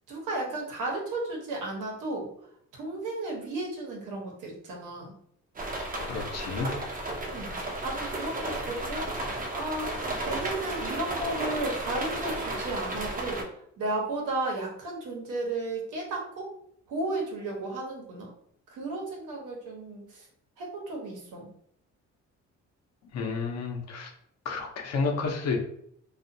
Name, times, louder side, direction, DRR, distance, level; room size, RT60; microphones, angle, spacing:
voice 1, 0.1-2.3 2.7-5.1 7.3-16.5 16.9-18.3 18.7-20.3 20.6-21.5, right 2 dB, 85° right, -1 dB, 1.0 m, -34 dB
sound 1, 5.6-13.4, right 1 dB, 30° right, 0.6 m, -33 dB
voice 2, 6.0-6.7 23.1-24.1 24.4-25.6, left 4 dB, 60° left, 2 dB, 0.7 m, -30 dB
2.5 x 2.4 x 2.6 m, 0.68 s
cardioid pair, 90°, 30 cm